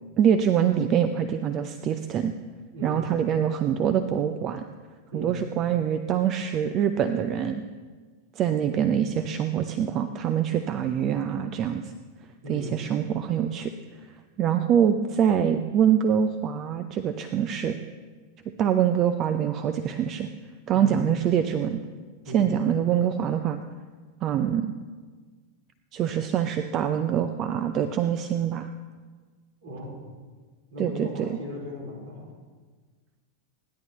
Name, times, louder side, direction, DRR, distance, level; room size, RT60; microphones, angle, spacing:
voice 1, 0.2-2.3 2.8-4.6 5.1-7.6 8.4-11.9 12.5-13.7 14.4-17.7 18.6-20.3 20.7-21.8 22.3-23.6 24.2-24.7 25.9-28.7 30.8-31.3, right 9 dB, 35° right, 10 dB, 0.7 m, -24 dB
voice 2, 2.7-3.1 5.1-5.4 12.4-12.8 20.7-21.0 22.3-22.6 29.6-30.1 30.7-32.4, left 1 dB, 60° right, -3 dB, 4.1 m, -37 dB
27.0 x 10.5 x 3.1 m, 1.5 s
figure-of-eight pair, 90°, 0 cm